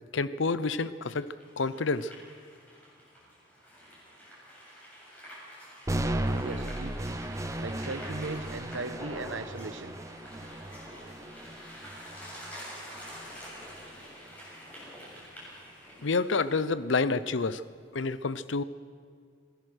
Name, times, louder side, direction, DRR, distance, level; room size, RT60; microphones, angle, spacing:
voice 1, 0.1-2.1 16.0-17.6 17.9-18.6, left 4 dB, 80° left, 15 dB, 0.7 m, -29 dB
sound 1, 1.2-16.6, equal, 10° left, 7.4 m, -47 dB
sound 2, 5.9-13.9, right 1 dB, 15° right, 0.8 m, -36 dB
voice 2, 5.9-7.2 7.6-9.9, right 3 dB, 90° right, 11 dB, 1.1 m, -38 dB
26.5 x 16.5 x 6.4 m, 2.1 s
head